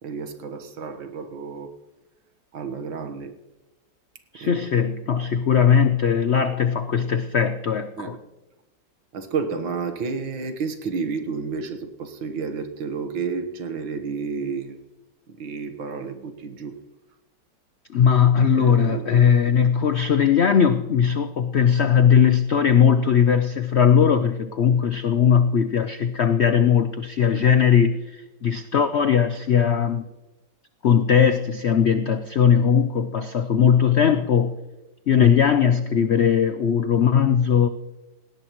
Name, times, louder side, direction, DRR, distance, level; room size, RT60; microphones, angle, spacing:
voice 1, 0.0-1.7 2.5-3.4 4.4-4.8 8.0-8.2 9.1-14.8 15.3-16.8 18.5-19.2 19.6-19.7, right 5 dB, 85° right, 7 dB, 2.1 m, -31 dB
voice 2, 4.3-8.2 17.9-30.0 30.8-34.5 35.1-37.7, left 7 dB, 75° left, 9 dB, 0.6 m, -19 dB
18.0 x 17.5 x 3.1 m, 1.0 s
omnidirectional pair, 2.0 m